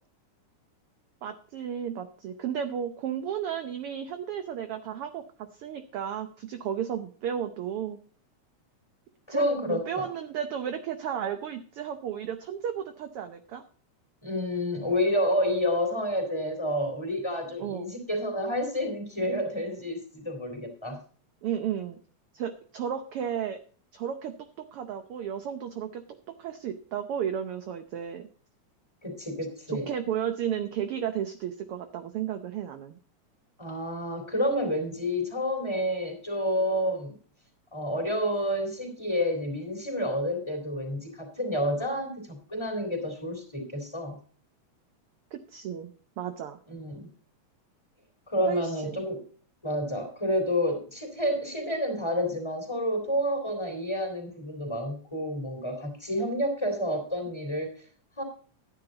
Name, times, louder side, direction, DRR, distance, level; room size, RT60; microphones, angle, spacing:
voice 1, 1.2-5.2 5.5-8.0 9.3-13.6 17.6-17.9 21.4-22.0 22.3-23.6 23.9-24.3 24.7-26.0 26.4-28.3 29.7-33.0 45.3-46.6 48.5-49.0, right 9 dB, 70° right, 9 dB, 1.3 m, -33 dB
voice 2, 9.3-10.1 14.2-21.0 29.0-29.9 33.6-37.1 37.7-44.2 46.7-47.1 48.3-49.2 49.6-57.7 58.2-58.3, equal, 10° left, 3 dB, 3.2 m, -29 dB
12.0 x 10.0 x 4.0 m, 0.42 s
omnidirectional pair, 3.5 m